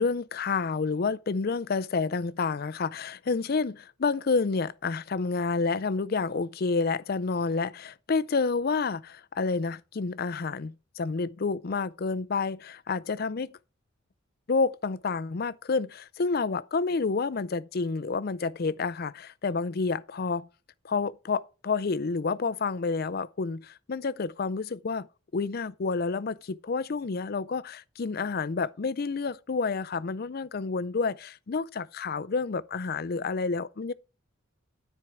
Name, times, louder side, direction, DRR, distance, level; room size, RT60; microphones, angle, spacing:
voice 1, 0.0-13.5 14.5-20.5 20.8-25.1 25.3-33.9, left 4 dB, 50° left, 0.5 m, -29 dB
13.0 x 4.5 x 4.8 m
head